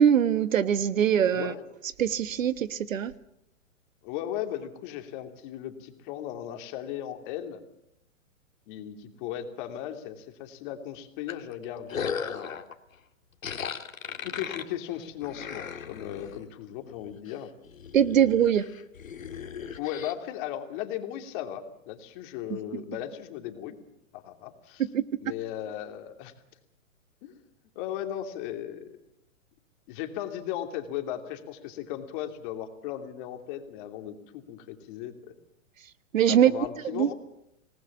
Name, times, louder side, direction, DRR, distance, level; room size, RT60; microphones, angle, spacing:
voice 1, 0.0-1.5 2.0-3.1 17.9-18.6 22.5-22.8 24.9-25.0 36.1-36.5 36.9-37.1, right 9 dB, 80° right, 1.4 m, -22 dB
voice 2, 4.0-7.6 8.7-12.5 14.2-17.5 19.8-23.8 24.1-24.8 25.2-26.3 27.2-27.4 27.7-29.0 29.9-35.3 36.3-37.1, left 11 dB, 40° left, 2.9 m, -36 dB
sound 1, 11.3-12.7 13.4-16.4 16.9-17.3 17.7-20.1, left 6 dB, 90° left, 2.1 m, -37 dB
26.0 x 19.0 x 7.2 m
hypercardioid pair, 135°, 39 cm